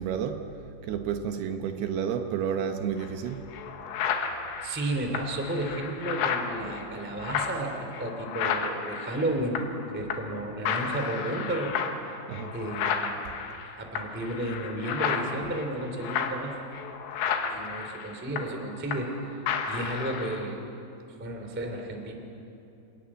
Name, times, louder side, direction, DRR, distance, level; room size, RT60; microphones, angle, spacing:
voice 1, 0.0-3.5 12.3-12.6, right 7 dB, 75° right, 6 dB, 2.7 m, -31 dB
sound 1, 3.0-3.1 3.5-9.8 10.1-10.4 10.7-19.2 19.5-20.5, left 6 dB, 80° left, 3.7 m, -32 dB
voice 2, 4.6-9.6 9.9-11.7 12.5-13.2 13.7-16.5 17.5-20.6 21.2-22.2, right 1 dB, 5° right, 3 dB, 1.1 m, -32 dB
28.0 x 14.5 x 9.7 m, 3.0 s
omnidirectional pair, 5.2 m